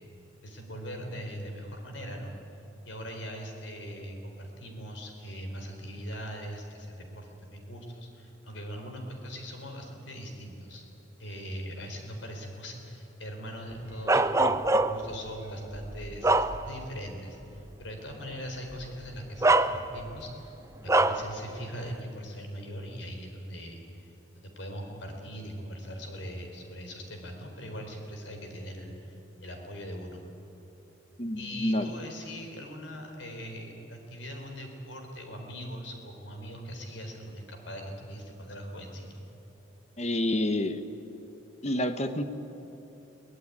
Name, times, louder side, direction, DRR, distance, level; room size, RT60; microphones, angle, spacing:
voice 1, 0.4-2.3 2.8-10.9 11.2-20.5 20.8-24.1 24.3-30.2 31.4-39.2, equal, 75° left, 3 dB, 4.3 m, -41 dB
Bark, 14.1-15.1 15.7-17.0 17.4-17.6 18.7-18.8 19.4-20.2 20.9-21.3, right 2 dB, 15° right, 0.5 m, -24 dB
voice 2, 14.4-14.8 31.2-31.9 40.0-40.8 41.6-42.2, left 1 dB, 35° left, 9 dB, 1.2 m, -29 dB
23.0 x 17.5 x 9.9 m, 3.0 s
head